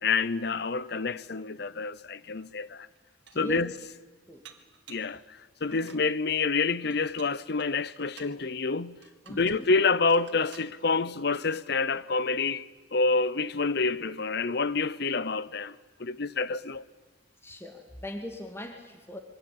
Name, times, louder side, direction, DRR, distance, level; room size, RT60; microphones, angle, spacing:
voice 1, 0.0-2.9 3.4-3.7 4.9-9.0 9.3-12.7 12.9-16.8, left 4 dB, 60° left, 0.8 m, -28 dB
Dishes pots and pans, 2.4-2.5 3.0-3.6 4.4-5.2 5.6-6.1 6.9-8.4 9.0-9.7 10.1-10.7, right 7 dB, 65° right, 2.6 m, -53 dB
voice 2, 9.3-9.7 17.4-19.2, equal, 15° left, 2.3 m, -40 dB
27.5 x 23.5 x 8.7 m
head